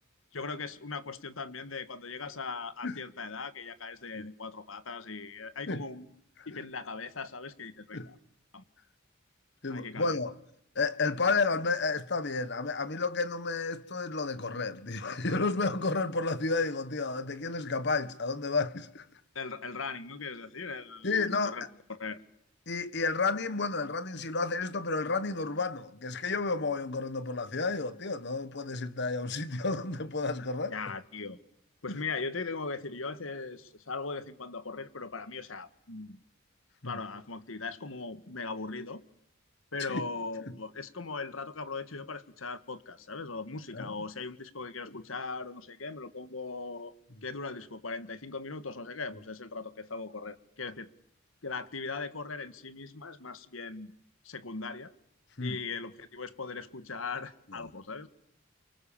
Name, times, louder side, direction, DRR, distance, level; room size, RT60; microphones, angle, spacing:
voice 1, 0.3-6.1 6.5-8.1 8.5-8.6 9.7-10.2 19.3-21.6 21.9-22.2 30.7-31.4 31.8-36.2 36.8-39.0 39.7-46.9 47.2-50.9 51.4-53.9 54.2-54.9 55.4-58.1, left 4 dB, 80° left, 1.6 m, -39 dB
voice 2, 9.6-10.4 10.7-19.1 21.0-21.7 22.7-30.7 31.9-32.0 36.8-37.0 39.8-40.1 40.4-40.6 43.7-44.0 44.8-45.0 55.4-55.6 57.5-57.7, left 3 dB, 55° left, 1.4 m, -31 dB
28.5 x 24.5 x 7.2 m
head